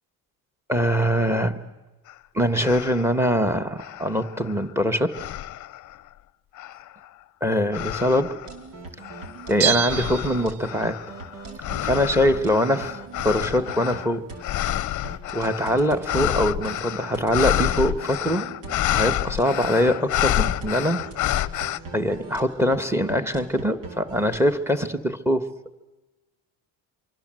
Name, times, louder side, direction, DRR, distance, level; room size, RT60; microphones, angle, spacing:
voice 1, 0.7-1.6 2.3-5.2 7.4-8.4 9.5-11.0 11.8-13.0 13.2-14.3 15.3-18.5 18.9-21.1 21.9-25.5, equal, 5° right, 11 dB, 1.4 m, -23 dB
sound 1, 2.1-2.2 2.6-3.2 3.8-4.7 5.1-6.0 6.6-7.1 7.7-8.5 9.0-21.8, left 14 dB, 45° left, 0.7 m, -29 dB
sound 2, 8.4-24.4, right 3 dB, 85° right, 4.4 m, -40 dB
Bell, 9.6-11.0 11.3-11.4, right 10 dB, 60° right, 0.9 m, -27 dB
25.5 x 24.0 x 7.7 m, 1.1 s
cardioid pair, 130°, 41 cm